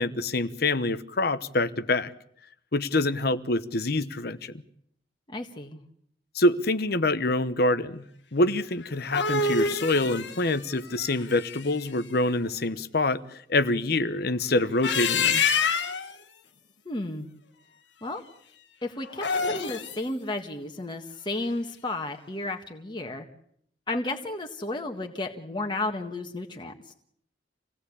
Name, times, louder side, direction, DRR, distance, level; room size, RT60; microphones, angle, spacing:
voice 1, 0.0-2.1 2.7-4.5 6.3-8.0 8.3-15.4, left 2 dB, 60° left, 1.0 m, -26 dB
voice 2, 5.3-5.8 16.8-17.3 18.0-18.2 18.8-23.3 23.9-26.9, left 2 dB, 25° left, 1.7 m, -33 dB
sound 1, 8.8-11.9 14.6-16.1 19.1-20.0, left 5 dB, 90° left, 1.8 m, -27 dB
26.5 x 17.5 x 8.5 m
head